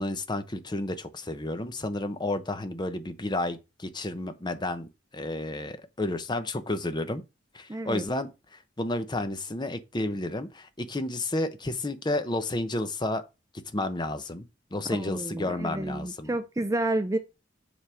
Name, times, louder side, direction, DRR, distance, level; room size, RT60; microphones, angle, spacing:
voice 1, 0.0-7.2 7.5-13.2 13.7-16.3, left 2 dB, 20° left, 0.8 m, -31 dB
voice 2, 7.7-8.0 15.0-17.2, right 2 dB, 15° right, 0.5 m, -30 dB
7.1 x 3.6 x 6.2 m
head